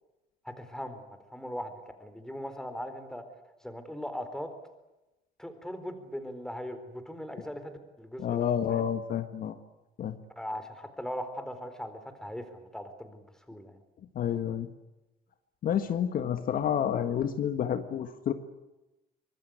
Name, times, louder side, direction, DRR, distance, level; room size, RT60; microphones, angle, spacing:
voice 1, 0.4-1.0 1.3-1.7 2.0-3.2 3.6-4.5 5.4-8.9 10.4-13.8, equal, 5° left, 8 dB, 4.2 m, -39 dB
voice 2, 8.2-9.6 10.0-10.1 14.1-14.7 15.6-18.3, left 9 dB, 55° left, 9 dB, 1.6 m, -29 dB
25.0 x 19.5 x 9.5 m, 0.99 s
cardioid pair, 110°, 17 cm